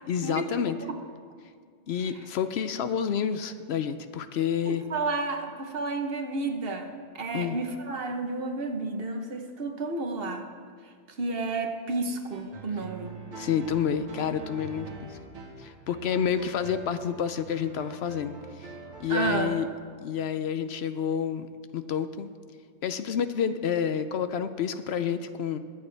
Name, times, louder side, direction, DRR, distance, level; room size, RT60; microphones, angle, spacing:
voice 1, 0.1-0.8 1.9-4.8 7.3-7.6 13.4-14.9 15.6-18.7 19.0-19.7 20.0-21.5 21.7-22.3 22.8-25.6, left 8 dB, 70° left, 11 dB, 0.8 m, -29 dB
voice 2, 4.7-10.5 11.2-13.1 19.1-19.5, right 3 dB, 55° right, 5 dB, 1.2 m, -31 dB
sound 1, 12.3-19.4, right 3 dB, 75° right, 1.6 m, -44 dB
22.5 x 8.5 x 3.3 m, 2.1 s
omnidirectional pair, 1.2 m